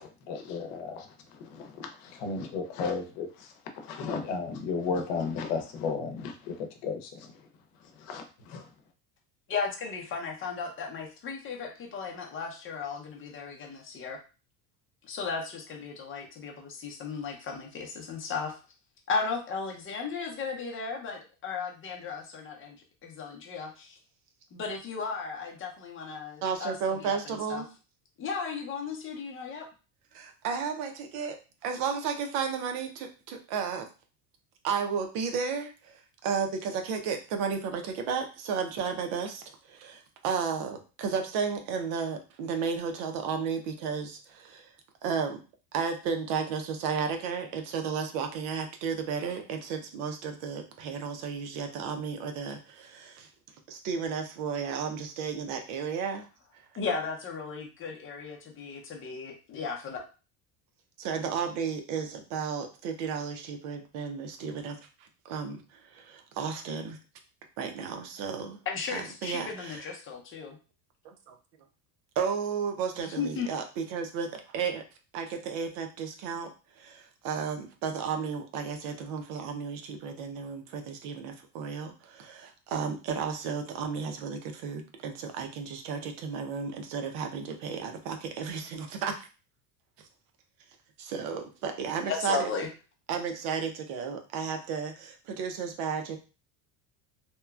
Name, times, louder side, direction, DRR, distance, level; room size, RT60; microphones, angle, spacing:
voice 1, 0.0-7.3 8.0-8.7, left 5 dB, 80° left, 6 dB, 0.8 m, -34 dB
voice 2, 9.5-14.2 15.0-18.6 19.1-22.8 23.0-24.0 24.5-27.6 28.2-29.7 56.8-60.0 68.7-70.6 73.0-73.5 92.0-92.7, left 5 dB, 30° left, 1 dB, 0.6 m, -35 dB
voice 3, 26.4-27.7 30.1-31.4 31.6-33.9 34.6-44.7 45.0-45.4 45.7-53.3 53.7-56.3 56.5-56.6 61.0-67.0 67.6-68.6 68.9-69.8 71.0-71.4 72.2-74.8 75.1-89.3 91.0-92.5 93.1-96.2, right 6 dB, 80° right, 5 dB, 0.7 m, -33 dB
2.9 x 2.2 x 2.3 m, 0.33 s
cardioid pair, 130°, 44 cm